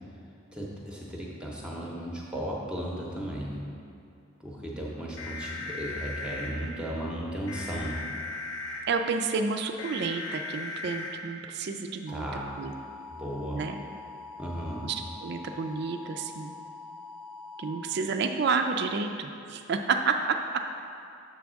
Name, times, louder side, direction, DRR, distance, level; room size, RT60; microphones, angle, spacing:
voice 1, 0.5-3.6 4.4-8.0 12.1-12.6 13.1-13.7 14.4-14.9, equal, 5° right, -4 dB, 0.7 m, -35 dB
sound 1, 5.2-6.5 7.5-8.8 9.8-11.1 12.1-17.7, left 3 dB, 85° left, 1.2 m, -40 dB
voice 2, 8.9-12.3 12.6-12.7 13.5-13.8 14.8-16.6 17.6-20.4, right 4 dB, 50° right, 5 dB, 0.3 m, -30 dB
6.8 x 3.5 x 6.2 m, 2.6 s
head